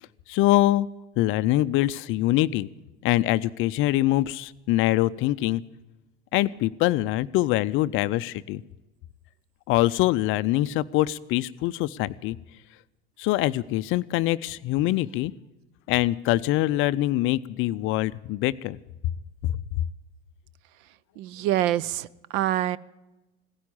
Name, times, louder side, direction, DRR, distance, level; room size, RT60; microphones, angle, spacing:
voice 1, 0.3-0.9 1.2-2.7 3.0-5.6 6.3-8.6 9.7-12.4 13.2-15.3 15.9-18.8 19.4-19.6, left 16 dB, 40° left, 15 dB, 0.5 m, -24 dB
voice 2, 21.2-22.8, right 13 dB, 50° right, 22 dB, 0.6 m, -26 dB
16.5 x 10.5 x 8.7 m, 1.0 s
hypercardioid pair, 85°, 34 cm